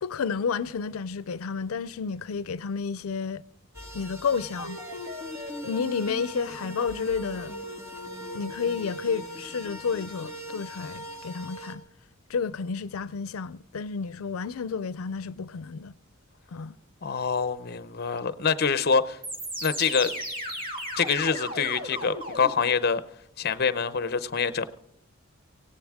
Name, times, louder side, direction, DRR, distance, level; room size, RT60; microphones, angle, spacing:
voice 1, 0.0-3.4 3.9-4.8 5.6-7.6 8.3-11.8 12.3-15.9 16.5-16.8, left 5 dB, 90° left, 0.5 m, -31 dB
sound 1, 3.7-11.8, equal, 15° right, 2.0 m, -41 dB
sound 2, 4.6-11.0 19.2-22.6, equal, 45° right, 2.4 m, -38 dB
voice 2, 17.0-19.2 19.6-20.1 21.0-23.0 23.4-24.7, left 5 dB, 50° left, 0.7 m, -25 dB
17.5 x 17.0 x 3.6 m
head